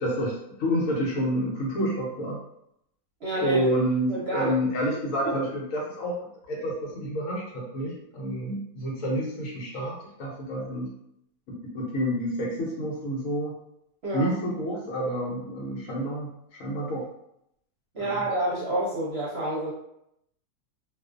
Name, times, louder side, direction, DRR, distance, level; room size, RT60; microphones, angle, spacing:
voice 1, 0.0-2.4 3.3-6.2 6.5-10.9 11.6-13.5 14.1-16.3 16.6-17.0 18.0-18.2, equal, 65° left, -3 dB, 1.0 m, -29 dB
voice 2, 3.2-3.7 4.1-4.5 4.9-5.0 14.0-14.3 17.9-19.7, right 1 dB, 50° right, -7 dB, 0.9 m, -28 dB
2.4 x 2.3 x 2.4 m, 0.76 s
omnidirectional pair, 1.6 m